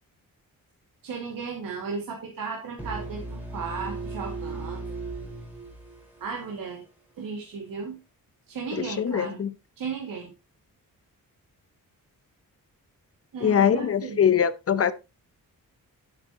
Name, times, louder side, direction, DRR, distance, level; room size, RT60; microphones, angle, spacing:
voice 1, 1.0-5.0 6.2-6.8 7.2-8.0 8.5-9.4 9.8-10.3 13.3-14.4, right 5 dB, 80° right, 2.3 m, -35 dB
sound 1, 2.8-6.7, right 2 dB, 5° right, 4.6 m, -37 dB
voice 2, 8.7-9.5 13.4-14.9, left 8 dB, 45° left, 0.9 m, -23 dB
10.5 x 8.6 x 3.0 m
wide cardioid pair, 135°, 34 cm